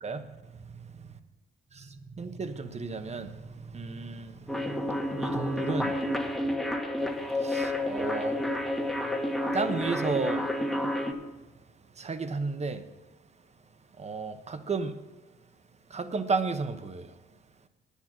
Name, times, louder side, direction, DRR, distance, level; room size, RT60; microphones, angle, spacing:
voice 1, 0.0-0.4 0.6-1.1 1.7-6.3 7.2-8.4 9.5-10.5 12.0-12.9 14.0-15.0 15.9-17.2, right 4 dB, 35° right, 1.0 m, -33 dB
sound 1, 4.5-11.1, left 1 dB, ahead, 1.4 m, -30 dB
10.0 x 8.4 x 6.2 m
cardioid pair, 90°, 20 cm